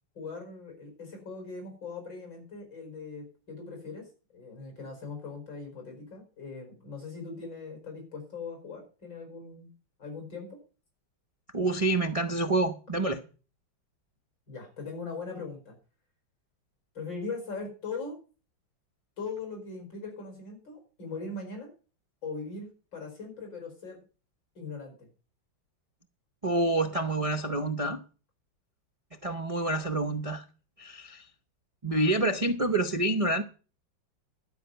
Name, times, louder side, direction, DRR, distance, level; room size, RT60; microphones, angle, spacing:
voice 1, 0.2-9.7 10.0-10.6 14.5-15.8 17.0-18.2 19.2-21.7 22.2-24.0 24.6-25.1, left 4 dB, 70° left, 5.5 m, -40 dB
voice 2, 11.5-13.2 26.4-28.0 29.2-30.5 30.8-31.3 31.8-33.4, right 2 dB, 65° right, 0.3 m, -27 dB
12.0 x 5.7 x 9.1 m
omnidirectional pair, 2.1 m